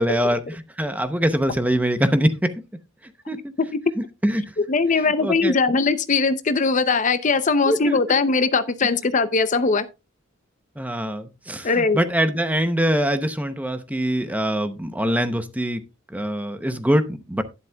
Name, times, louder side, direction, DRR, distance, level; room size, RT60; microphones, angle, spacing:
voice 1, 0.0-2.5 3.3-3.4 4.2-4.4 5.0-5.6 7.7-8.5 10.8-15.8 16.1-17.4, equal, 5° right, 0.7 m, -23 dB
voice 2, 4.7-9.9 11.6-12.0, left 4 dB, 40° left, 0.6 m, -20 dB
11.5 x 10.5 x 2.3 m
head